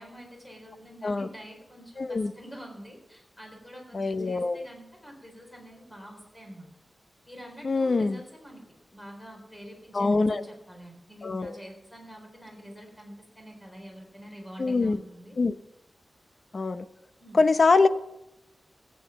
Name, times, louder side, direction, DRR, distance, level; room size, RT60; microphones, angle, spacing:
voice 1, 0.0-6.7 7.3-8.6 8.9-15.4 17.2-17.4, equal, 10° left, 1 dB, 4.1 m, -46 dB
voice 2, 2.0-2.3 3.9-4.6 7.6-8.2 9.9-10.4 11.2-11.5 14.6-15.0 15.4-15.5 16.5-16.9 17.3-17.9, left 3 dB, 45° left, 12 dB, 0.6 m, -23 dB
14.5 x 8.6 x 5.8 m, 0.89 s
wide cardioid pair, 150°, 0 cm